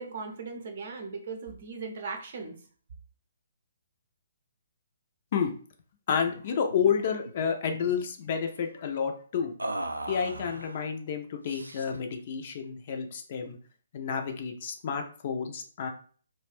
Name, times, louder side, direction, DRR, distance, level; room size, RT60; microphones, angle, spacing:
voice 1, 0.0-2.6, right 4 dB, 50° right, 3 dB, 0.6 m, -38 dB
voice 2, 6.1-9.5 10.1-13.6 13.9-15.9, left 7 dB, 45° left, 4 dB, 0.4 m, -30 dB
sound 1, 6.3-6.4 6.7-6.9 7.2-8.0 9.6-10.8 11.5-12.1, right 1 dB, 80° right, 0.3 m, -37 dB
2.4 x 2.2 x 3.2 m, 0.42 s
figure-of-eight pair, 130°, 0 cm